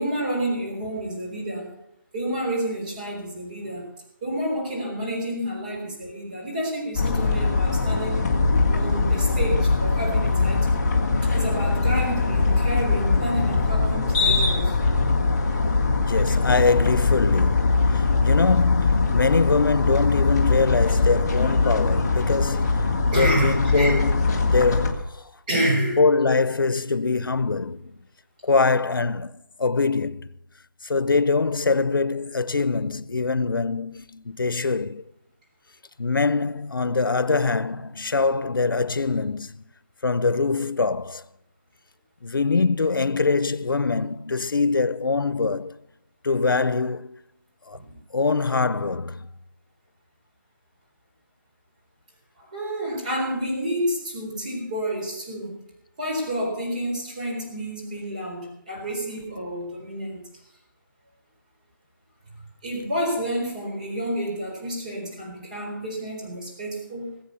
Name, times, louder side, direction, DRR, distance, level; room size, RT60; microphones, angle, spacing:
voice 1, 0.0-1.7 2.1-3.8 4.2-8.3 8.7-10.8 11.2-14.8 23.1-24.0 25.5-26.0 47.7-47.9 52.4-55.6 56.0-60.2 62.6-67.2, right 1 dB, 25° right, 4.1 m, -29 dB
sound 1, 6.9-24.9, left 3 dB, 15° left, 1.4 m, -21 dB
voice 2, 16.0-25.3 26.0-28.0 28.4-30.3 30.8-35.0 36.0-39.6 40.0-41.2 42.2-45.8 46.2-47.1 47.7-47.8 48.1-49.3, left 4 dB, 85° left, 0.8 m, -23 dB
20.0 x 7.9 x 7.0 m
hypercardioid pair, 175°, 11 cm